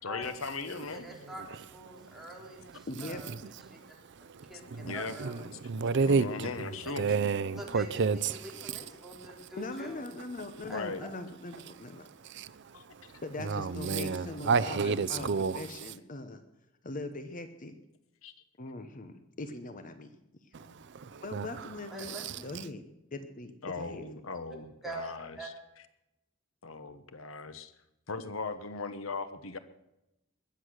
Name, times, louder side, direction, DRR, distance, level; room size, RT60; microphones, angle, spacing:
voice 1, 0.0-1.1 4.9-5.2 6.0-7.0 10.6-11.0 12.7-12.9 18.2-18.3 23.6-25.5 26.6-27.7 28.1-29.6, left 4 dB, 80° left, 1.1 m, -38 dB
voice 2, 0.9-3.8 4.5-5.5 6.6-7.0 7.5-10.1 10.7-11.1 13.9-14.4 21.9-22.4 23.8-23.9 24.8-25.5, right 1 dB, ahead, 3.7 m, -45 dB
voice 3, 2.9-3.2 9.6-12.1 13.2-16.4 16.8-17.7 18.6-20.1 21.2-22.1 22.4-22.8 23.1-24.1, left 2 dB, 40° left, 1.0 m, -41 dB
voice 4, 4.3-6.5 7.0-8.7 12.3-12.5 13.4-15.6 20.5-20.7 20.9-21.5 22.1-22.3, right 5 dB, 60° right, 0.5 m, -30 dB
21.0 x 8.1 x 6.4 m
head